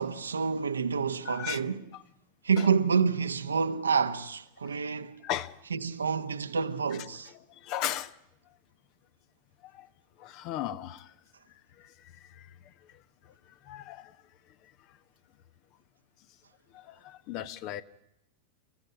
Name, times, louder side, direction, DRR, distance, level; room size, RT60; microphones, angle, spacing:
voice 1, 0.0-1.8 2.4-5.2 5.7-7.3, right 5 dB, 75° right, 1.2 m, -28 dB
voice 2, 1.2-1.6 1.9-2.0 2.6-2.7 4.6-4.7 5.2-5.5 7.3-8.2 9.6-9.9 10.2-11.1 11.8-14.2 14.6-15.0 16.7-17.8, left 12 dB, 40° left, 1.2 m, -38 dB
30.0 x 16.0 x 10.0 m
figure-of-eight pair, 90°, 0 cm